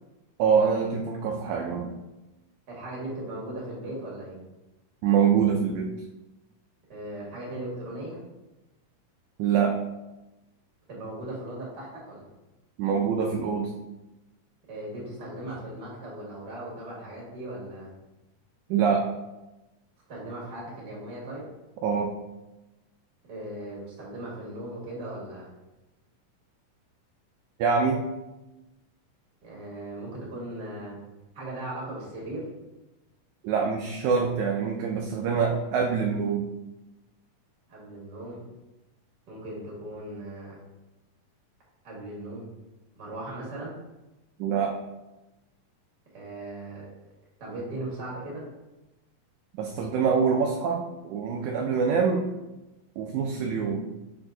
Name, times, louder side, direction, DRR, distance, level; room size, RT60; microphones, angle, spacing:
voice 1, 0.4-1.9 5.0-6.0 9.4-9.8 12.8-13.7 18.7-19.1 21.8-22.1 27.6-28.0 33.4-36.5 44.4-44.7 49.6-52.3 53.0-53.8, right 6 dB, 80° right, 2 dB, 1.8 m, -25 dB
voice 2, 2.7-4.4 6.9-8.2 10.9-12.3 14.7-17.9 20.1-21.5 23.3-25.5 29.4-31.0 31.3-32.5 37.7-38.4 39.3-40.6 41.8-42.5 42.9-43.8 46.1-46.9 47.4-48.4, right 1 dB, 35° right, -4 dB, 2.2 m, -38 dB
6.8 x 4.5 x 3.9 m, 1.0 s
omnidirectional pair, 3.8 m